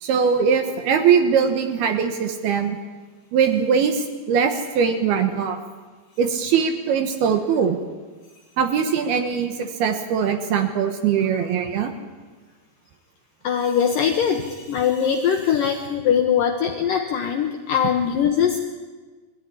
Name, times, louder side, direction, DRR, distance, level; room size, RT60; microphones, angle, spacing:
voice 1, 0.0-2.8 3.3-5.6 6.2-7.8 8.6-11.9, right 7 dB, 70° right, 6 dB, 2.9 m, -21 dB
voice 2, 13.4-18.6, left 8 dB, 75° left, 4 dB, 2.0 m, -21 dB
21.5 x 14.0 x 9.9 m, 1.4 s
omnidirectional pair, 5.3 m